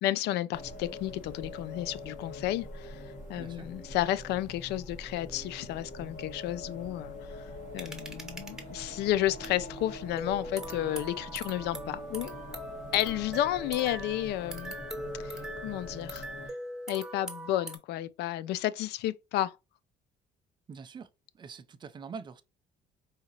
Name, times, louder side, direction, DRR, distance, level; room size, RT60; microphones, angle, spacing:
voice 1, 0.0-12.3 12.9-14.8 15.2-16.3 16.9-19.6, left 14 dB, 80° left, 0.4 m, -32 dB
sound 1, 0.5-16.5, left 2 dB, 45° left, 1.5 m, -44 dB
voice 2, 3.4-3.7 20.7-21.1 21.3-22.4, right 5 dB, 25° right, 0.5 m, -44 dB
sound 2, 7.8-8.6 9.4-9.5 10.2-17.8, right 1 dB, 5° right, 1.0 m, -41 dB
4.8 x 2.9 x 2.9 m
cardioid pair, 110°, 17 cm